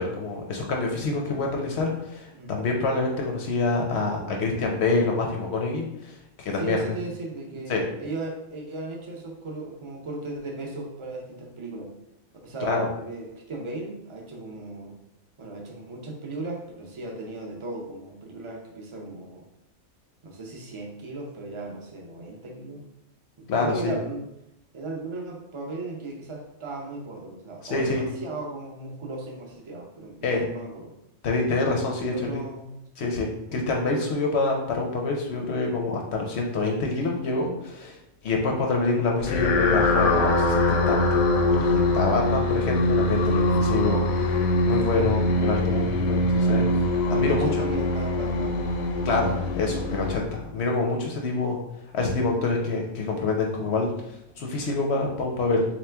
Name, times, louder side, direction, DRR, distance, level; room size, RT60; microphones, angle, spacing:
voice 1, 0.0-6.8 7.7-7.8 12.6-12.9 23.5-23.9 27.6-28.0 30.2-30.5 31.2-32.1 33.0-38.0 38.2-41.2 41.5-47.5 49.0-51.6 51.9-53.9 54.4-55.7, left 3 dB, 60° left, 1 dB, 0.8 m, -26 dB
voice 2, 6.5-11.9 12.4-15.0 15.4-19.4 20.2-22.8 23.4-24.3 24.7-30.9 32.0-32.7 33.0-33.1 33.5-33.7 42.2-42.5 47.0-48.6 49.4-49.5, right 2 dB, 40° right, 0 dB, 0.4 m, -36 dB
sound 1, 39.2-50.7, left 2 dB, 80° left, 1.0 m, -23 dB
3.6 x 3.0 x 3.3 m, 0.87 s
omnidirectional pair, 1.4 m